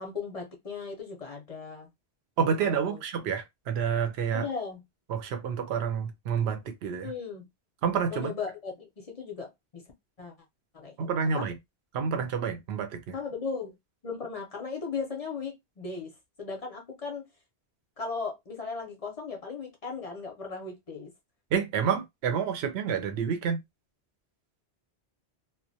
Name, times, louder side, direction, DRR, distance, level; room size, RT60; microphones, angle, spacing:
voice 1, 0.0-1.9 2.6-3.0 4.3-4.8 7.0-7.5 8.1-9.8 10.2-10.3 10.7-11.1 11.3-11.5 13.1-13.8 14.0-17.3 18.0-21.1, left 5 dB, 45° left, 0.5 m, -37 dB
voice 2, 2.4-4.5 5.1-7.1 7.8-8.3 11.0-11.6 11.9-13.1 21.5-23.6, right 7 dB, 75° right, 0.8 m, -29 dB
2.2 x 2.1 x 2.6 m
omnidirectional pair, 1.1 m